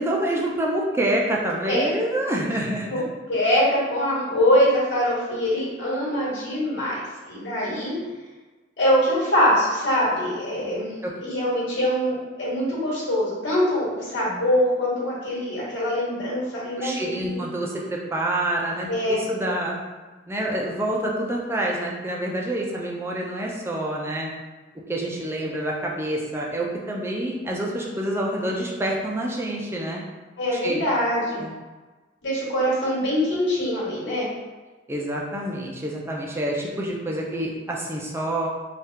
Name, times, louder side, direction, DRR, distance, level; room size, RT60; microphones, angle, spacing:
voice 1, 0.0-2.9 11.0-11.1 16.8-19.8 20.3-24.3 24.9-30.0 30.5-30.8 31.2-31.5 34.9-38.5, right 1 dB, 15° right, -2 dB, 0.4 m, -27 dB
voice 2, 2.9-8.0 8.8-10.9 11.2-17.4 18.9-19.2 30.4-31.4 32.2-34.3, equal, 75° left, -7 dB, 1.5 m, -23 dB
3.5 x 2.4 x 2.8 m, 1.2 s
head